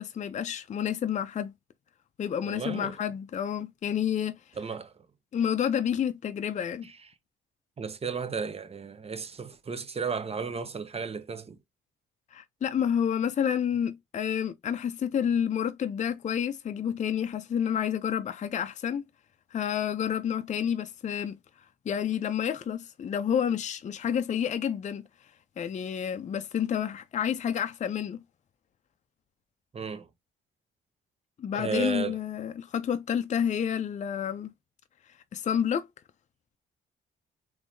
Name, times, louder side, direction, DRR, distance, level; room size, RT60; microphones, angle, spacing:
voice 1, 0.0-1.5 2.2-4.4 5.3-6.8 12.3-19.0 19.5-21.4 21.9-25.0 25.6-28.2 31.4-34.5 35.3-35.9, left 8 dB, 35° left, 0.5 m, -29 dB
voice 2, 2.4-2.9 4.6-4.9 6.8-7.0 7.8-11.6 29.7-30.1 31.5-32.2, right 5 dB, 30° right, 0.8 m, -34 dB
3.5 x 3.1 x 2.6 m
cardioid pair, 90°, 20 cm